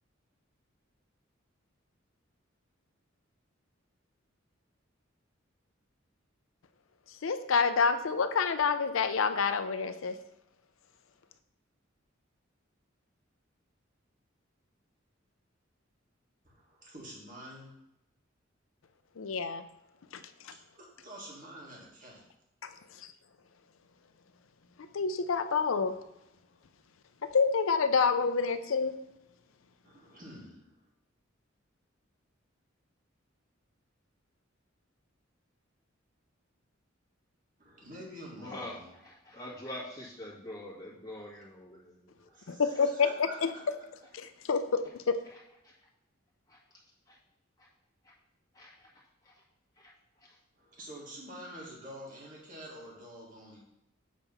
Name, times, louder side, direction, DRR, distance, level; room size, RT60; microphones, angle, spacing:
voice 1, 7.2-10.1 19.2-19.6 20.1-20.2 22.6-22.7 24.9-25.9 27.3-29.0 42.5-43.5 44.1-45.2, left 5 dB, 85° left, 10 dB, 0.5 m, -28 dB
voice 2, 16.4-17.7 20.7-22.3 29.8-30.9 37.6-38.9 42.2-43.8 44.2-44.3 50.6-53.6, equal, 45° right, -3 dB, 1.9 m, -48 dB
voice 3, 38.4-38.8 39.0-42.1 45.6-45.7 46.5-46.6 47.1-47.2 48.5-48.9 49.2-49.3 49.8-49.9, left 1 dB, 20° left, -5 dB, 1.9 m, -44 dB
7.5 x 3.5 x 5.4 m, 0.87 s
head